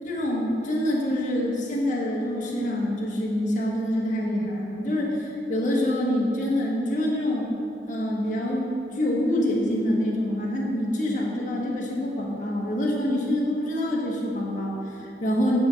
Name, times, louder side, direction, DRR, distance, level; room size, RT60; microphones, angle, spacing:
voice 1, 0.0-7.5 7.9-15.6, left 1 dB, 45° left, -3 dB, 1.4 m, -26 dB
9.5 x 4.4 x 6.2 m, 2.6 s
head